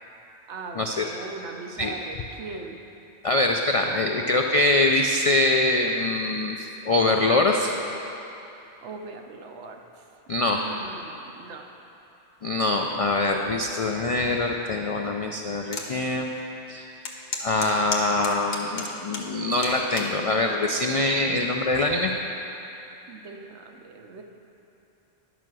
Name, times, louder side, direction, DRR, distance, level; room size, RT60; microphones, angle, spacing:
voice 1, 0.5-2.8 8.8-10.0 10.5-11.8 23.1-24.2, right 4 dB, 75° right, 4 dB, 1.1 m, -40 dB
voice 2, 3.2-7.7 10.3-10.6 12.4-16.3 16.7-16.9 17.4-22.1, left 2 dB, 65° left, 2 dB, 0.3 m, -24 dB
sound 1, 15.7-15.9 16.4-16.5 17.0-19.3 19.6-20.1 20.9-21.2, left 4 dB, 45° left, 1.0 m, -32 dB
11.0 x 5.7 x 6.1 m, 2.9 s
omnidirectional pair, 1.2 m